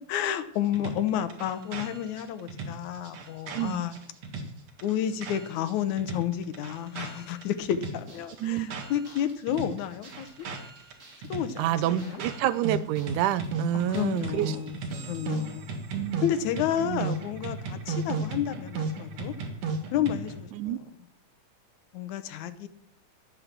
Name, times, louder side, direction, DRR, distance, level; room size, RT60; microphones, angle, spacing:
voice 1, 0.1-4.0 4.8-10.5 11.3-12.2 13.7-14.7 15.1-15.7 16.2-19.3 19.9-20.7 21.9-22.7, left 10 dB, 75° left, 11 dB, 2.4 m, -31 dB
sound 1, 0.7-5.7 6.0-9.2 9.5-20.4, right 3 dB, 60° right, 2.9 m, -35 dB
sound 2, 7.6-15.4, right 2 dB, 25° right, 3.1 m, -53 dB
voice 2, 8.4-8.7 11.6-14.6 14.9-15.0 15.9-16.2 16.8-17.1 20.5-20.8, right 12 dB, 85° right, 15 dB, 2.2 m, -28 dB
12.0 x 8.7 x 7.5 m, 0.71 s
omnidirectional pair, 3.5 m